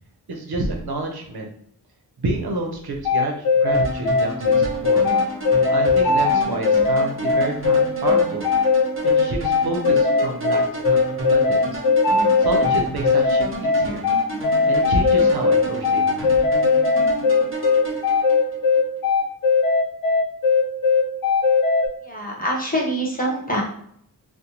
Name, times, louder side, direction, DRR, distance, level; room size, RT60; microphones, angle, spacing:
voice 1, 0.3-1.5 2.2-5.0 5.7-8.5 9.2-11.8 12.4-14.1 14.7-16.4, right 2 dB, 85° right, 2 dB, 0.6 m, -29 dB
sound 1, 3.0-21.9, left 4 dB, 65° left, 0.5 m, -18 dB
sound 2, 3.7-18.8, equal, 35° right, 0.9 m, -31 dB
voice 2, 22.0-23.6, equal, 25° left, -3 dB, 0.9 m, -24 dB
2.6 x 2.0 x 2.9 m, 0.67 s
wide cardioid pair, 60°, 37 cm